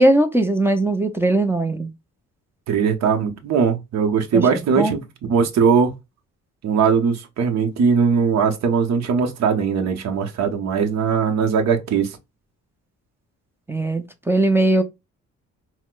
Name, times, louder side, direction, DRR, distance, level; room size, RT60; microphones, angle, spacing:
voice 1, 0.0-1.9 4.3-5.0 13.7-14.8, right 2 dB, 10° right, 0.5 m, -19 dB
voice 2, 2.7-5.0 5.3-5.9 6.6-12.2, right 6 dB, 60° right, 0.8 m, -20 dB
4.2 x 2.1 x 2.3 m
cardioid pair, 90°, 30 cm